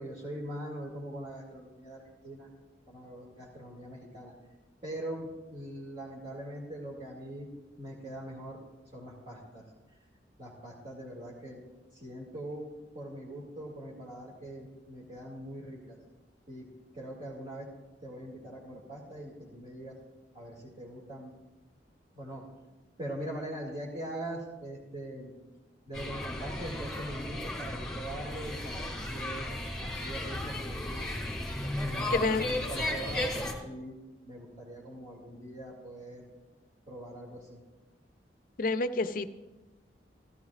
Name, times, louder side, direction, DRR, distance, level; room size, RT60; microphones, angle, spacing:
voice 1, 0.0-2.5 2.9-4.3 4.8-7.5 7.8-8.6 8.9-9.6 10.4-11.6 11.9-16.0 16.5-16.7 16.9-17.7 18.0-20.0 20.3-21.3 22.1-22.4 23.0-25.3 25.9-29.5 29.8-31.1 31.6-36.3 36.9-37.6, right 1 dB, 40° right, -7 dB, 2.2 m, -42 dB
sound 1, 25.9-33.5, left 1 dB, 5° left, 2.2 m, -35 dB
voice 2, 32.1-32.5 38.6-39.3, left 3 dB, 55° left, 11 dB, 0.6 m, -28 dB
15.5 x 14.5 x 2.4 m, 1.2 s
head